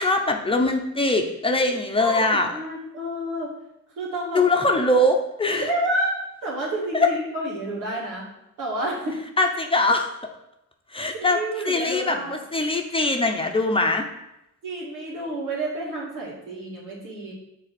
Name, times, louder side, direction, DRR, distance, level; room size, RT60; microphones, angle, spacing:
voice 1, 0.0-2.5 4.3-5.7 6.9-7.1 9.4-10.1 10.9-14.0, left 2 dB, 20° left, 3 dB, 0.9 m, -22 dB
voice 2, 2.0-3.5 4.0-4.4 4.7-4.9 5.6-6.1 6.4-8.2 8.6-9.2 11.1-12.4 14.6-17.3, right 1 dB, 85° right, -5 dB, 2.8 m, -29 dB
6.4 x 4.1 x 6.0 m, 0.86 s
cardioid pair, 90°, 30 cm